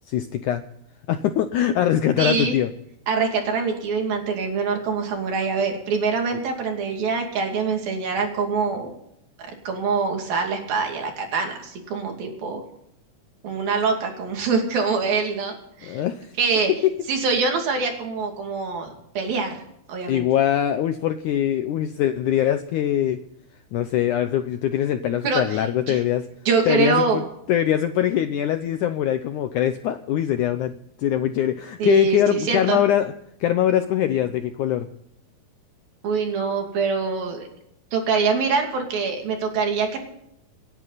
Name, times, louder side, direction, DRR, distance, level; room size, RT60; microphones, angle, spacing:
voice 1, 0.1-0.6 1.1-2.7 15.8-16.3 16.8-16.9 20.1-23.2 23.7-26.3 26.7-27.2 27.5-30.7 31.0-33.1 33.4-34.9, left 11 dB, 80° left, 9 dB, 1.7 m, -22 dB
voice 2, 2.2-2.6 3.1-8.9 9.4-12.6 13.4-16.0 16.4-16.7 17.1-18.9 19.2-19.6 19.9-20.3 25.2-25.4 25.9-26.0 26.5-27.2 31.8-32.8 36.0-37.5 37.9-40.0, right 5 dB, 65° right, 3 dB, 4.3 m, -24 dB
28.0 x 11.0 x 4.1 m, 0.77 s
omnidirectional pair, 4.5 m